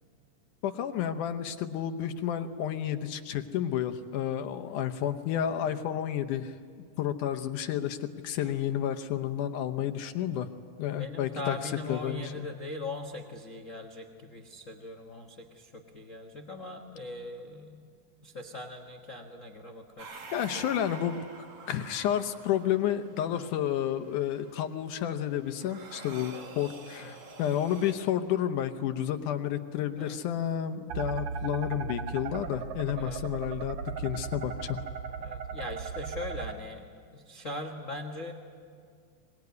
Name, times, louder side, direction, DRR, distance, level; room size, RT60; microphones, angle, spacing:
voice 1, 0.6-6.5 7.0-10.5 10.8-12.5 20.3-21.2 21.7-34.8, left 10 dB, 75° left, 8 dB, 2.3 m, -31 dB
voice 2, 11.0-17.9 18.2-20.2 20.5-20.6 23.3-23.5 26.3-26.5 27.0-27.2 30.0-30.2 32.9-33.2 35.2-36.9 37.1-38.3, left 2 dB, 90° left, 5 dB, 0.7 m, -40 dB
sound 1, 20.0-27.9, right 4 dB, 50° right, 2.9 m, -48 dB
sound 2, 30.9-36.5, right 6 dB, 70° right, 1.4 m, -36 dB
24.0 x 20.5 x 9.5 m, 2.2 s
omnidirectional pair, 3.9 m